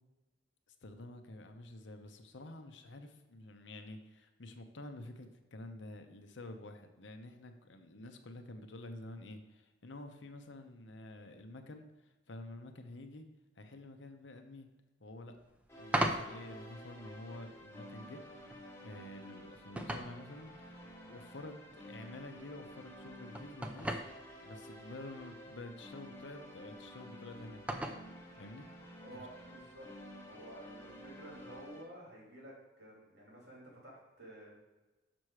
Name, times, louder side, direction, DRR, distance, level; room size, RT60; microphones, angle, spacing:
voice 1, 0.8-13.3 13.6-14.7 15.0-15.4 15.8-18.5 18.8-24.0 24.4-28.0 28.4-29.3, left 2 dB, 75° left, 6 dB, 0.8 m, -49 dB
sound 1, 15.4-31.7, right 1 dB, 5° right, 0.5 m, -44 dB
sound 2, 15.7-31.8, equal, 15° left, 1.1 m, -52 dB
voice 2, 29.0-29.9 30.2-34.6, right 1 dB, 60° right, -4 dB, 2.9 m, -52 dB
6.1 x 6.0 x 4.9 m, 1.1 s
head